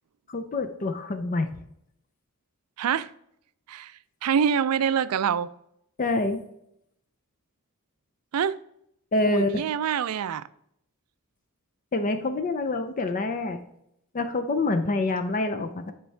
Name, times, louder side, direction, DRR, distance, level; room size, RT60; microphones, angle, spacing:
voice 1, 0.3-1.5 6.0-6.4 9.1-9.6 11.9-13.6 14.1-15.9, left 2 dB, 35° left, 0.5 m, -26 dB
voice 2, 2.8-3.1 3.7-3.9 4.2-5.5 8.3-8.6 9.3-10.4, right 7 dB, 75° right, 0.4 m, -25 dB
10.5 x 4.6 x 3.3 m
head